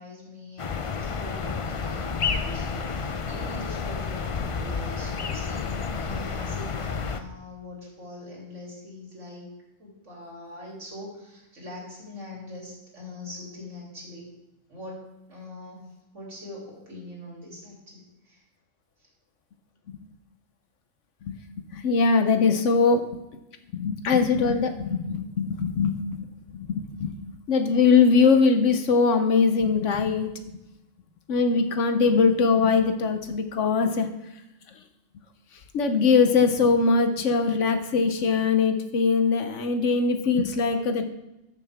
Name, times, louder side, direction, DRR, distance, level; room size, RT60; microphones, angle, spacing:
voice 1, 0.0-9.5 9.8-14.3 14.7-15.8 16.1-18.4, left 2 dB, 70° right, -4 dB, 3.4 m, -42 dB
sound 1, 0.6-7.2, left 5 dB, 55° left, 0.3 m, -30 dB
voice 2, 21.2-23.0 23.7-30.3 31.3-34.1 35.7-41.1, left 5 dB, 70° left, 7 dB, 1.1 m, -22 dB
14.0 x 6.8 x 3.5 m, 0.93 s
omnidirectional pair, 1.3 m